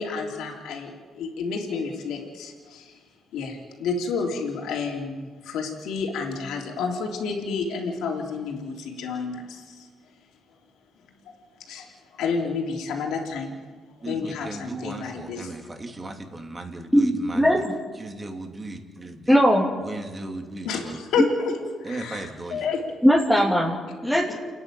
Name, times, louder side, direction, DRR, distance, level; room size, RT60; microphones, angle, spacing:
voice 1, 0.0-2.9 3.3-9.8 11.7-11.9 12.2-13.6 14.0-15.5 20.6-21.5 21.8-22.8 24.3-24.4, left 5 dB, 85° left, 1 dB, 3.5 m, -30 dB
voice 2, 14.0-17.6 18.0-19.3 19.8-21.0 21.8-22.7, right 2 dB, 25° right, 3 dB, 3.0 m, -37 dB
voice 3, 16.9-17.7 19.3-19.7 21.2-21.3 23.0-24.3, equal, ahead, -4 dB, 3.0 m, -19 dB
29.0 x 10.5 x 9.1 m, 1.4 s
cardioid pair, 90°, 0 cm